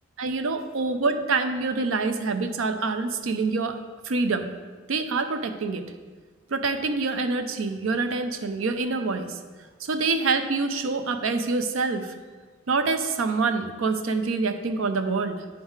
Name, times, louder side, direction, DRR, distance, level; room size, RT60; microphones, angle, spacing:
voice 1, 0.2-3.8 4.0-4.5 4.9-5.8 6.5-9.4 9.8-12.1 12.7-15.4, right 3 dB, 80° right, 8 dB, 0.5 m, -26 dB
9.6 x 3.7 x 4.7 m, 1.4 s
head